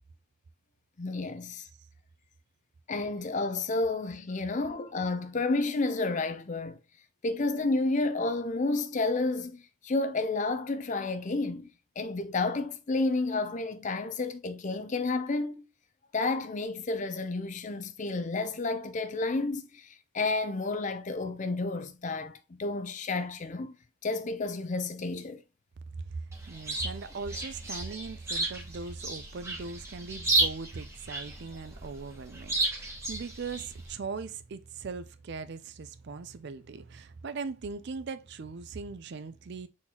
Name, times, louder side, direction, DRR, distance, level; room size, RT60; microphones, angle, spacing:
voice 1, 1.0-1.7 2.9-6.8 7.2-11.7 12.0-15.6 16.1-23.7 24.0-25.4, left 3 dB, 35° left, 0.5 m, -31 dB
voice 2, 26.0-39.7, right 4 dB, 50° right, 0.4 m, -39 dB
Chirp tweet, 26.3-33.9, right 2 dB, 10° right, 1.0 m, -33 dB
4.2 x 3.9 x 2.8 m
head